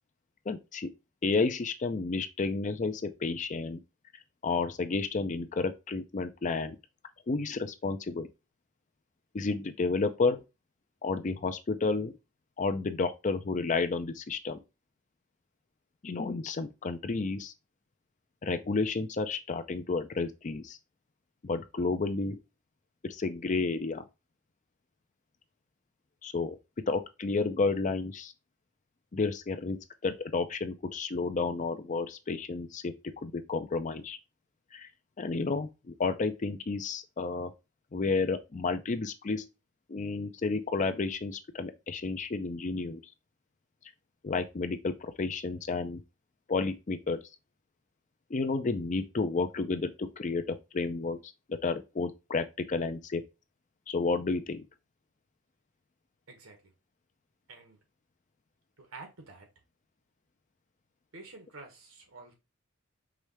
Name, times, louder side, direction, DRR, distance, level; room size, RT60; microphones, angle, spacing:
voice 1, 0.5-0.9 1.2-3.8 4.4-6.8 7.3-8.3 9.3-10.4 11.0-12.1 12.6-14.6 16.0-17.5 18.4-20.8 21.4-22.4 23.0-24.0 26.2-26.6 26.9-28.3 29.1-32.9 33.2-34.2 34.7-34.9 35.2-37.5 37.9-39.5 39.9-43.0 44.2-46.0 46.5-47.2 48.3-51.2 51.5-53.2 53.9-54.6, left 3 dB, 35° left, 0.5 m, -31 dB
voice 2, 56.3-56.7 57.5-57.8 58.8-59.5 61.1-62.3, right 3 dB, 80° right, 1.5 m, -49 dB
4.9 x 3.2 x 3.1 m
head